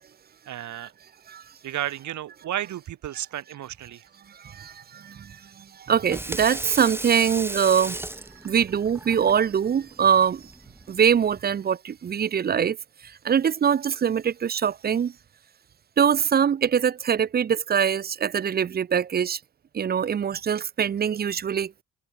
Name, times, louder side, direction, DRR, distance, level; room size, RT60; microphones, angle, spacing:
voice 1, 0.5-0.9 1.6-4.1, right 12 dB, 70° right, 2.4 m, -33 dB
voice 2, 4.4-5.4 5.9-8.0 8.4-10.4 10.9-12.8 13.2-15.1 16.0-19.4 19.7-21.8, right 8 dB, 30° right, 0.5 m, -23 dB
Water tap faucet / Sink (filling or washing), 6.0-11.4, right 1 dB, 10° right, 1.4 m, -36 dB
cardioid pair, 90°, 30 cm